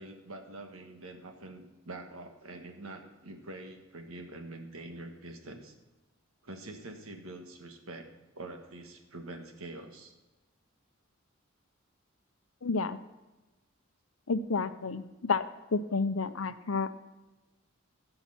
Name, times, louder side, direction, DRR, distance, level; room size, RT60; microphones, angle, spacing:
voice 1, 0.0-5.7 6.4-8.1 8.3-10.1, right 2 dB, 85° right, 4 dB, 1.5 m, -45 dB
voice 2, 12.6-13.0 14.3-15.4 15.7-16.9, left 4 dB, 70° left, 12 dB, 0.6 m, -30 dB
16.0 x 5.8 x 5.8 m, 1.1 s
head